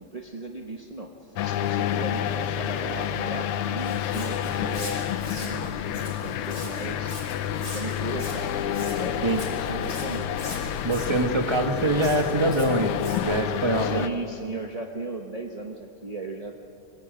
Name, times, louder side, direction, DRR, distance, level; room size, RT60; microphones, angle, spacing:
voice 1, 0.0-7.2 7.6-10.3 13.8-16.6, right 3 dB, 35° right, 2 dB, 0.6 m, -37 dB
sound 1, 1.4-14.1, left 10 dB, 90° left, 1.7 m, -29 dB
Walk footsteps, 3.8-13.2, left 1 dB, 40° left, 6.0 m, -40 dB
voice 2, 10.8-12.9 13.2-14.0, right 2 dB, 15° right, 5 dB, 1.1 m, -24 dB
24.0 x 20.5 x 9.1 m, 2.8 s
omnidirectional pair, 2.3 m